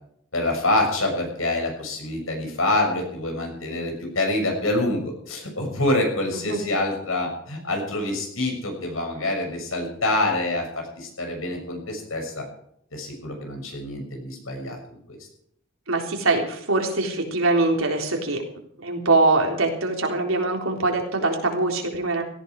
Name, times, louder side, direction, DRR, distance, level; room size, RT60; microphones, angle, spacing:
voice 1, 0.3-12.4 12.9-14.8 15.1-15.2, left 2 dB, 85° left, 3 dB, 6.5 m, -26 dB
voice 2, 6.3-6.7 15.9-18.4 18.8-22.2, right 2 dB, 85° right, 2 dB, 3.8 m, -23 dB
17.5 x 14.5 x 4.8 m, 0.68 s
head